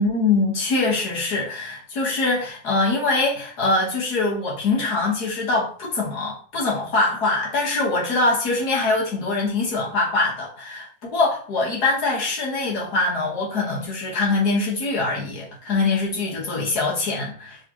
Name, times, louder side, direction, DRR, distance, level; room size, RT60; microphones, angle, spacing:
voice 1, 0.0-17.6, left 3 dB, 80° left, -4 dB, 1.9 m, -23 dB
3.9 x 3.6 x 3.0 m, 0.44 s
omnidirectional pair, 1.7 m